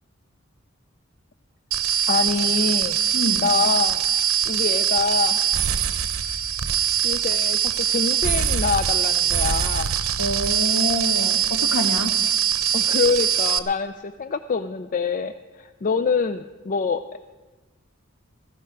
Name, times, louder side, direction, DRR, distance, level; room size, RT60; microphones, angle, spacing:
sound 1, 1.7-13.6, right 9 dB, 90° right, 0.7 m, -22 dB
voice 1, 2.1-3.0 3.4-4.0 4.5-5.5 7.0-10.0 12.7-17.2, left 5 dB, 40° left, 10 dB, 0.4 m, -25 dB
voice 2, 3.1-3.5 10.2-12.2, left 1 dB, 60° left, 7 dB, 1.2 m, -26 dB
15.5 x 14.0 x 4.6 m, 1.2 s
head